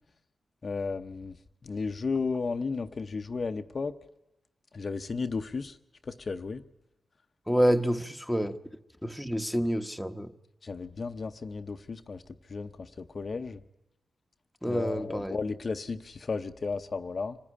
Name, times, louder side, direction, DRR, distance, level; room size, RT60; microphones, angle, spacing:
voice 1, 0.6-1.4 1.6-3.9 4.7-5.8 6.0-6.6 10.6-12.2 12.5-13.6 14.7-17.4, left 4 dB, 45° left, 0.7 m, -34 dB
voice 2, 7.5-8.6 9.0-10.3 14.6-15.4, equal, ahead, 1.0 m, -28 dB
25.0 x 14.0 x 9.9 m
cardioid pair, 80°, 0 cm